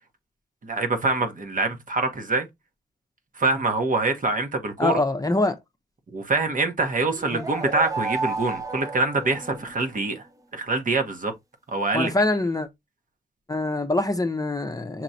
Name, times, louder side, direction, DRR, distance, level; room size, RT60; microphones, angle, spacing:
voice 1, 0.6-2.5 3.3-5.0 6.1-10.2 10.5-11.3 11.7-12.1, right 3 dB, 50° right, 1.1 m, -25 dB
voice 2, 4.8-5.6 7.3-7.4 11.9-12.7 13.5-15.0, left 2 dB, 20° left, 0.7 m, -24 dB
sound 1, 7.1-10.0, right 3 dB, 20° right, 0.6 m, -32 dB
5.9 x 3.1 x 2.6 m
wide cardioid pair, 120°, 18 cm